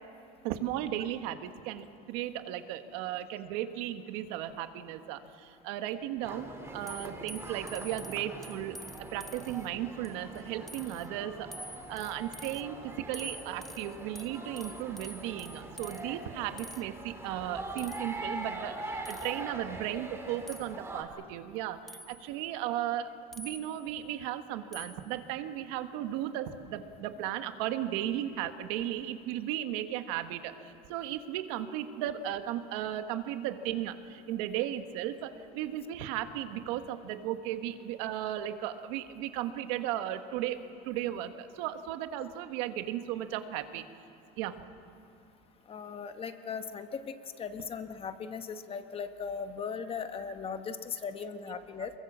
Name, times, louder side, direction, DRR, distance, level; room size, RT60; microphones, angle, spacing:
voice 1, 0.4-11.5 11.9-43.8 44.4-44.6 51.5-51.7, right 12 dB, 80° right, 8 dB, 1.5 m, -36 dB
sound 1, 6.2-21.0, right 2 dB, 15° right, 3.0 m, -43 dB
sound 2, 6.9-9.7 10.0-10.4 10.7-11.1 11.5-12.6 13.1-16.0 16.6-16.8 17.8-18.2 19.0-19.4 20.5-20.7 21.9-22.3 23.3-23.9 24.7-25.1, equal, ahead, 0.7 m, -47 dB
voice 2, 45.7-51.9, left 6 dB, 30° left, 8 dB, 1.3 m, -38 dB
23.5 x 22.5 x 7.4 m, 2.6 s
cardioid pair, 130°, 18 cm